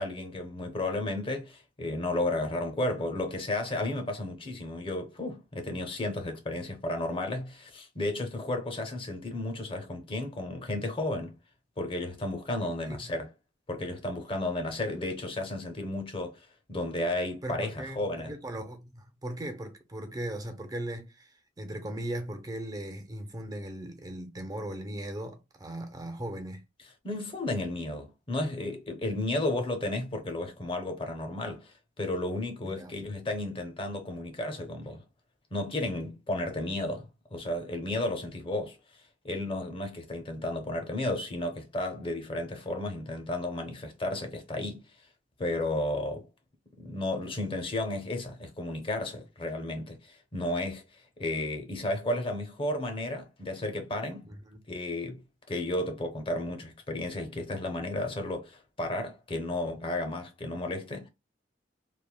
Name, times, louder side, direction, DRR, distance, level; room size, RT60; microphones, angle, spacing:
voice 1, 0.0-11.4 11.8-13.3 13.7-18.3 27.0-35.0 35.5-38.8 39.2-44.9 45.4-46.3 46.8-50.8 51.2-54.3 54.7-55.2 55.5-61.1, left 1 dB, 30° left, 0.7 m, -33 dB
voice 2, 17.4-21.3 21.6-26.6 32.6-32.9 54.3-54.6, right 1 dB, 20° right, 0.5 m, -38 dB
3.2 x 2.1 x 2.2 m
head